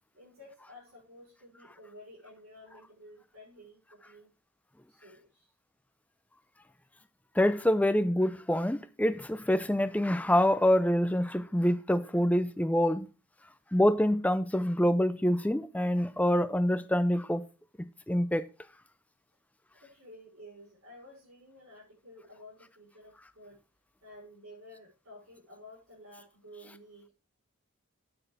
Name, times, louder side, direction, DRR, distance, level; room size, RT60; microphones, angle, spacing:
voice 1, 0.1-4.3 4.9-5.5 19.7-23.6 24.0-27.1, left 1 dB, 90° right, 5.9 m, -52 dB
voice 2, 7.4-13.1 13.7-17.5 18.1-18.4, left 1 dB, 5° left, 0.4 m, -26 dB
8.9 x 8.7 x 3.3 m
head